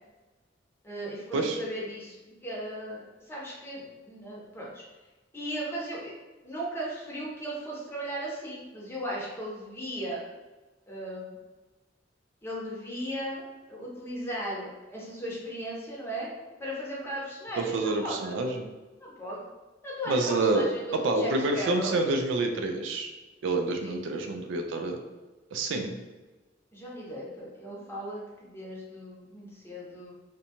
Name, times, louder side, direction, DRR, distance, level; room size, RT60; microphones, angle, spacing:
voice 1, 0.8-2.1 2.4-4.8 5.3-6.1 6.4-10.2 10.9-11.4 12.4-13.4 13.7-16.3 16.6-18.4 19.0-19.4 19.8-22.0 23.8-24.0 26.7-30.1, right 1 dB, 15° left, -5 dB, 0.7 m, -37 dB
voice 2, 17.6-18.7 20.1-20.6 21.0-23.1 23.4-25.0 25.5-25.9, right 2 dB, 85° right, 4 dB, 0.4 m, -28 dB
2.6 x 2.2 x 2.8 m, 1.2 s
head